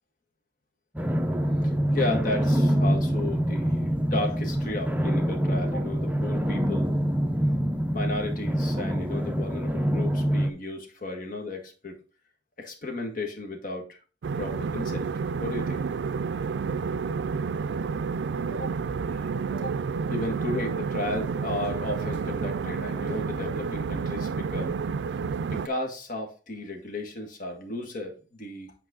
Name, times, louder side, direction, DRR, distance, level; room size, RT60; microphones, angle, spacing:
sound 1, 0.9-10.5, equal, 10° right, 0.6 m, -25 dB
voice 1, 1.6-6.9 7.9-12.0 12.6-14.0 14.4-15.1 15.4-15.8 18.5-18.8 19.1-19.8 20.1-24.8 25.5-28.7, left 2 dB, 50° left, 2 dB, 1.8 m, -34 dB
sound 2, 14.2-25.7, right 5 dB, 70° right, 0.4 m, -30 dB
8.5 x 4.6 x 3.8 m, 0.35 s
head